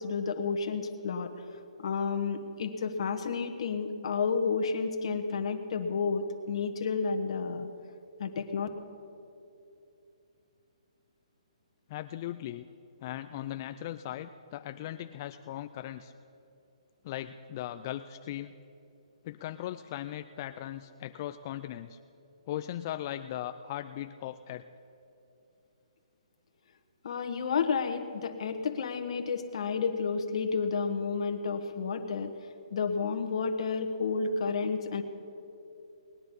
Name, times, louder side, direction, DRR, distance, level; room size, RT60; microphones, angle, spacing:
voice 1, 0.0-1.3 1.8-7.7 8.2-8.7 27.0-32.3 32.7-35.0, left 5 dB, 55° left, 6 dB, 1.3 m, -31 dB
voice 2, 11.9-12.7 13.0-16.1 17.0-18.5 19.2-22.0 22.5-24.6, left 12 dB, 30° left, 9 dB, 0.3 m, -38 dB
19.5 x 9.9 x 5.4 m, 2.8 s
hypercardioid pair, 160°, 4 cm